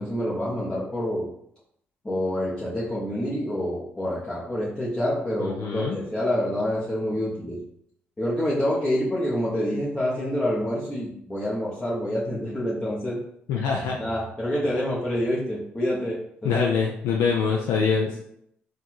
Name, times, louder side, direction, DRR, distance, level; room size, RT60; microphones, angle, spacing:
voice 1, 0.0-1.3 2.0-7.6 8.2-13.2 14.0-16.7, equal, 20° left, -8 dB, 1.3 m, -27 dB
voice 2, 5.4-6.0 13.5-14.0 16.4-18.2, left 5 dB, 85° left, 0 dB, 0.5 m, -24 dB
3.9 x 2.5 x 4.5 m, 0.73 s
supercardioid pair, 65°, 4 cm